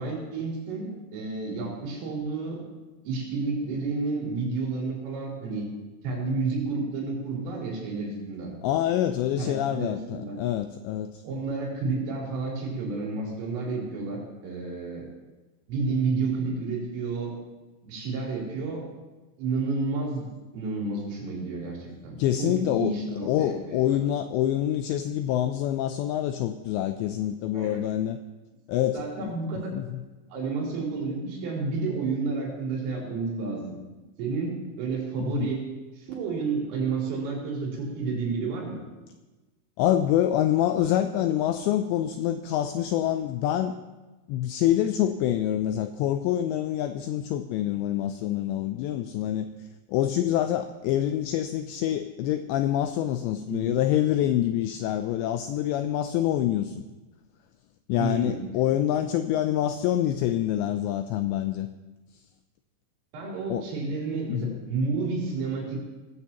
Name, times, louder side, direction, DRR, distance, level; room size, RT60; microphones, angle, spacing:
voice 1, 0.0-2.6 3.0-5.7 6.0-8.5 8.9-10.4 11.2-15.1 15.7-17.3 17.8-18.8 19.4-20.3 20.5-24.0 27.5-27.8 28.9-29.7 30.3-33.8 34.2-35.6 36.0-38.8 53.5-53.8 58.0-58.4 63.1-65.9, right 3 dB, 90° right, -3 dB, 6.2 m, -30 dB
voice 2, 8.6-11.2 22.2-28.2 28.7-29.4 29.7-30.0 35.2-35.6 39.8-43.8 44.3-49.5 49.9-56.8 57.9-61.7 63.5-63.7 64.3-64.6, left 12 dB, 90° left, 9 dB, 2.5 m, -26 dB
19.5 x 15.0 x 3.0 m, 1.1 s
omnidirectional pair, 5.6 m